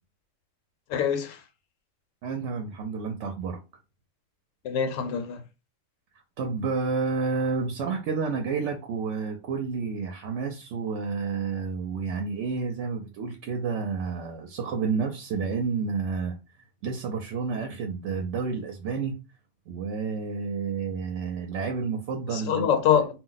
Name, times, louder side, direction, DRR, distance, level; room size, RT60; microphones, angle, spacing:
voice 1, 0.9-1.4 4.6-5.4 22.3-23.1, left 8 dB, 85° left, 1.0 m, -24 dB
voice 2, 2.2-3.6 6.4-16.3 16.8-19.1 19.7-22.7 23.0-23.1, right 5 dB, 75° right, 0.9 m, -30 dB
2.3 x 2.1 x 3.8 m
omnidirectional pair, 1.3 m